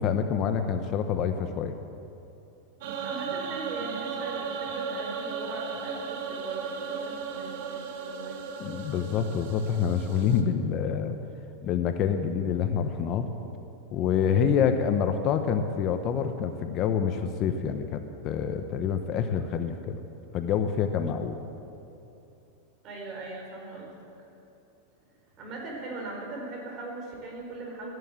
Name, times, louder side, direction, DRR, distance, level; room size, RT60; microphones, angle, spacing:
voice 1, 0.0-1.8 8.6-11.2 11.6-13.3 13.9-20.0 20.3-21.4, left 7 dB, 35° left, 7 dB, 0.8 m, -27 dB
voice 2, 2.8-8.8 22.8-24.0 25.4-27.9, right 2 dB, 35° right, 0 dB, 4.1 m, -40 dB
sound 1, 2.8-10.4, right 5 dB, 60° right, 1.5 m, -35 dB
13.5 x 11.0 x 8.7 m, 2.8 s
supercardioid pair, 150°, 0 cm